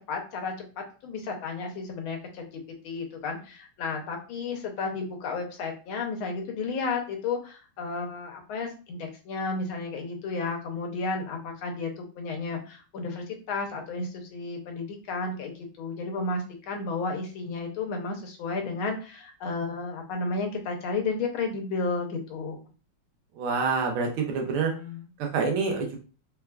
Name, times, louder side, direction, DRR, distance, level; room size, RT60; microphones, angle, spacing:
voice 1, 0.1-22.6 24.6-25.1, left 3 dB, 80° left, 3 dB, 1.5 m, -33 dB
voice 2, 23.4-24.7 25.2-26.0, right 5 dB, 90° right, 2 dB, 1.6 m, -27 dB
4.3 x 2.3 x 2.2 m, 0.35 s
omnidirectional pair, 2.3 m